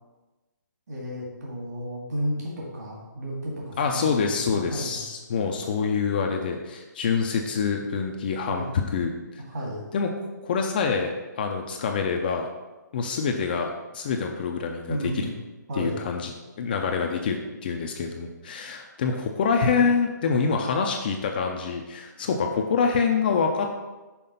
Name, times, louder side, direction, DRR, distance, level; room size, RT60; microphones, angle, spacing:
voice 1, 0.9-4.3 4.5-5.0 8.5-9.1 9.5-9.8 14.9-15.3 15.7-16.1, equal, 60° right, -3 dB, 2.0 m, -33 dB
voice 2, 3.8-9.4 9.9-10.1 10.4-12.5 12.9-15.3 15.7-16.3 16.6-23.7, left 5 dB, 30° left, 2 dB, 0.5 m, -26 dB
5.8 x 4.2 x 5.4 m, 1.2 s
hypercardioid pair, 165°, 10 cm